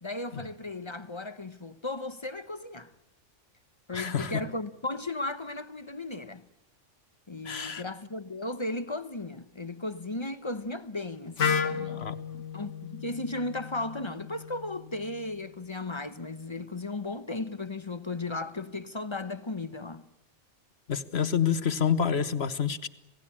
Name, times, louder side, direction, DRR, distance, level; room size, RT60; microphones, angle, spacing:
voice 1, 0.0-2.9 3.9-6.4 7.3-20.0, left 2 dB, 25° left, 0.9 m, -36 dB
voice 2, 3.9-4.4 7.4-7.8 11.9-12.2 20.9-22.9, left 7 dB, 60° left, 1.5 m, -28 dB
Wind instrument woodwind instrument, 11.4-15.3, left 6 dB, 80° left, 1.5 m, -33 dB
27.5 x 18.5 x 8.7 m
omnidirectional pair, 1.2 m